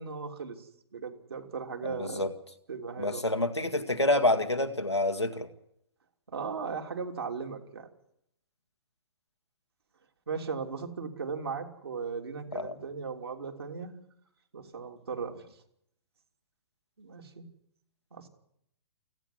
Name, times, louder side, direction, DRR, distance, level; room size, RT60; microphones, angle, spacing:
voice 1, 0.0-2.2 2.7-3.2 6.3-7.9 10.3-13.9 14.5-15.4 17.0-17.4 18.1-18.3, right 5 dB, 65° right, 3 dB, 3.2 m, -37 dB
voice 2, 1.8-2.3 3.0-5.5 12.5-12.7, left 1 dB, 90° left, 6 dB, 2.0 m, -28 dB
29.0 x 10.0 x 9.8 m, 0.74 s
figure-of-eight pair, 115°, 14 cm